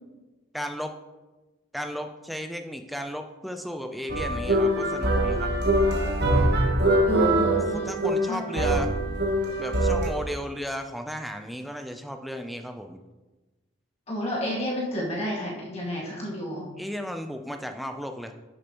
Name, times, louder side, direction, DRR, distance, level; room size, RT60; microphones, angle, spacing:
voice 1, 0.5-0.9 1.7-5.5 7.7-8.9 9.6-13.0 16.8-18.3, equal, ahead, 5 dB, 0.4 m, -34 dB
sound 1, 4.1-10.1, right 1 dB, 50° right, 1.1 m, -23 dB
voice 2, 7.1-8.0 8.3-8.7 14.1-16.7, equal, 30° left, -4 dB, 1.9 m, -31 dB
10.5 x 6.8 x 3.0 m, 1.2 s
head